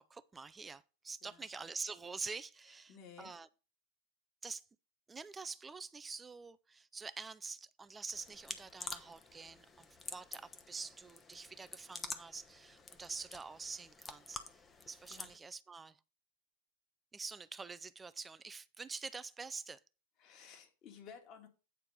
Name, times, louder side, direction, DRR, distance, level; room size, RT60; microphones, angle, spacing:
voice 1, 0.0-2.9 3.2-3.5 4.4-4.6 5.1-14.6 14.9-16.0 17.1-19.8, right 4 dB, 15° right, 0.5 m, -46 dB
voice 2, 2.7-3.4 15.1-15.3 20.2-21.5, left 7 dB, 35° left, 1.9 m, -55 dB
sound 1, 8.1-15.4, left 4 dB, 15° left, 0.9 m, -49 dB
9.0 x 4.4 x 5.2 m
figure-of-eight pair, 90°, 0 cm